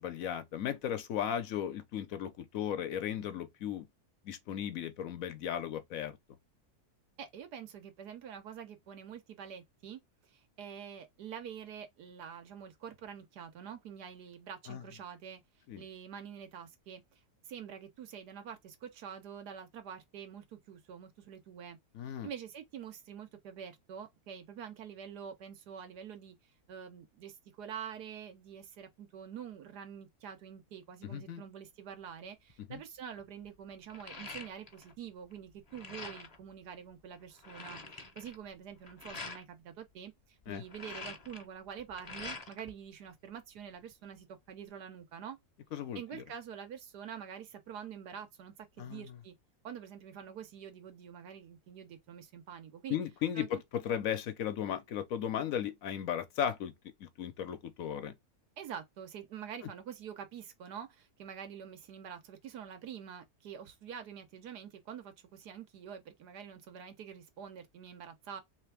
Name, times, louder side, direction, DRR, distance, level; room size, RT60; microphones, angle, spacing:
voice 1, 0.0-3.9 4.2-6.2 14.7-14.8 15.7-15.8 21.9-22.3 31.0-31.4 32.6-32.8 40.5-40.6 45.7-46.2 48.8-49.2 52.9-56.7 57.0-58.1, left 9 dB, 65° left, 1.2 m, -36 dB
voice 2, 7.2-15.4 15.8-21.8 22.2-26.3 26.7-40.1 40.5-45.4 45.9-49.3 49.6-53.0 53.3-53.5 58.6-68.4, right 8 dB, 90° right, 1.4 m, -46 dB
sound 1, 32.5-32.8 33.2-34.9 35.2-36.4 36.9-37.0 37.2-39.4 40.4-42.7 43.0-43.9, left 3 dB, 30° left, 0.8 m, -46 dB
3.3 x 3.3 x 3.3 m
omnidirectional pair, 1.7 m